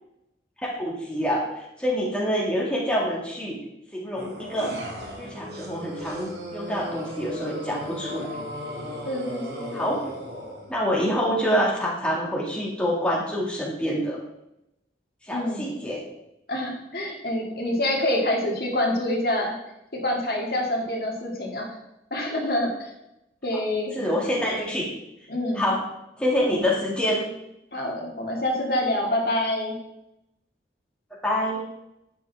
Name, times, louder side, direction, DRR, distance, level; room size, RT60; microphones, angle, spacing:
voice 1, 0.6-3.6 3.9-4.7 5.2-8.3 9.7-10.0 10.7-14.2 15.2-16.0 24.0-24.8 25.6-25.8 26.2-27.2 31.2-31.6, equal, 5° left, -4 dB, 2.0 m, -26 dB
sound 1, 4.2-10.8, equal, 65° right, 2.3 m, -36 dB
voice 2, 9.1-9.8 15.3-15.7 16.5-19.6 19.9-21.7 22.1-22.9 23.4-23.9 25.3-25.6 27.7-29.8, left 1 dB, 60° left, -1 dB, 2.0 m, -26 dB
11.0 x 8.1 x 3.4 m, 0.87 s
head